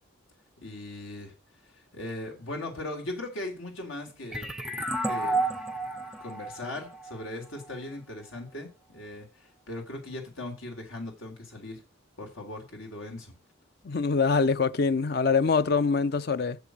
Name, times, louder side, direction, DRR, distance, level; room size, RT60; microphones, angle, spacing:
voice 1, 0.6-1.3 1.9-4.5 5.0-5.4 6.2-11.8 12.2-13.3, left 1 dB, 85° left, 3.9 m, -39 dB
sound 1, 4.3-7.7, right 2 dB, 5° right, 0.5 m, -31 dB
voice 2, 13.8-16.6, left 4 dB, 50° left, 0.5 m, -24 dB
7.2 x 6.9 x 7.8 m
head